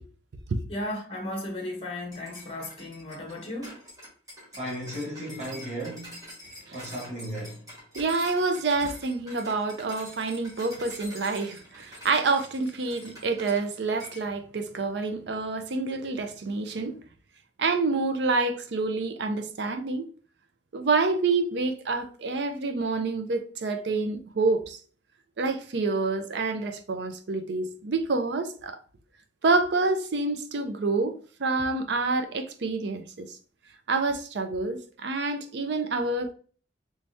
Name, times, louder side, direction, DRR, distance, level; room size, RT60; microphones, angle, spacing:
voice 1, 0.7-3.8, left 1 dB, 30° left, 0.8 m, -35 dB
sound 1, 2.1-13.7 14.0-14.3, equal, 20° right, 1.4 m, -46 dB
voice 2, 4.5-6.2 6.7-7.6, equal, 40° right, 1.2 m, -35 dB
voice 3, 8.0-16.9 17.6-20.1 20.7-24.8 25.4-28.8 29.4-31.1 31.4-33.4 33.9-36.3, right 3 dB, 70° right, 0.5 m, -27 dB
3.4 x 3.2 x 2.6 m
head